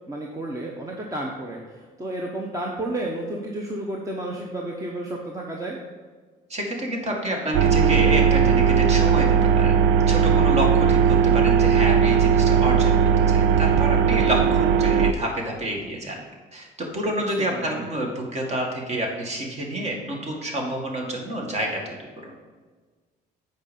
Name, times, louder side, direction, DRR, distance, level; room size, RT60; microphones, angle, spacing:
voice 1, 0.1-5.8 17.5-17.9, right 1 dB, 20° right, -1 dB, 1.0 m, -31 dB
voice 2, 6.5-16.2 16.5-21.9 22.2-22.3, right 1 dB, 40° right, 0 dB, 2.0 m, -28 dB
sound 1, 7.5-15.1, right 7 dB, 85° right, 0.4 m, -18 dB
8.1 x 5.1 x 5.4 m, 1.4 s
cardioid pair, 110°, 17 cm